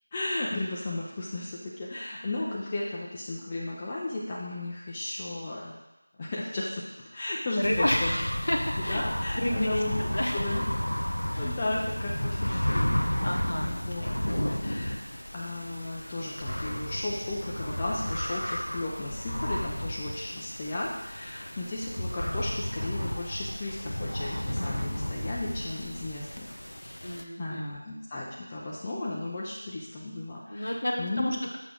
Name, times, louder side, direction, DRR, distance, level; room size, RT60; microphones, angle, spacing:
voice 1, 0.1-5.8 6.2-8.1 8.8-10.6 11.3-12.9 13.6-14.1 14.6-15.0 15.3-31.4, left 2 dB, 15° left, -6 dB, 0.5 m, -35 dB
sound 1, 7.6-27.2, equal, 85° left, 0.6 m, -32 dB
voice 2, 7.6-9.0 9.4-10.4 11.3-11.4 13.2-14.1 27.0-27.7 30.5-31.6, left 1 dB, 60° left, 1 dB, 1.1 m, -30 dB
6.8 x 4.7 x 3.7 m, 0.97 s
figure-of-eight pair, 175°, 0 cm